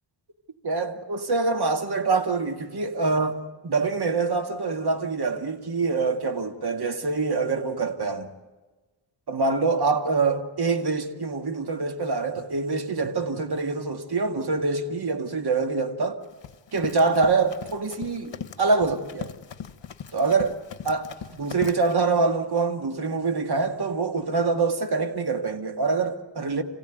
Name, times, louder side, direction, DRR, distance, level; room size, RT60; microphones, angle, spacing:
voice 1, 0.6-8.3 9.3-16.2 16.7-19.3 20.1-20.6 20.8-21.1 21.3-26.6, right 4 dB, 50° right, 2.1 m, -25 dB
Run, 16.2-21.9, left 8 dB, 60° left, 1.2 m, -39 dB
27.5 x 16.5 x 9.2 m
wide cardioid pair, 100°, 48 cm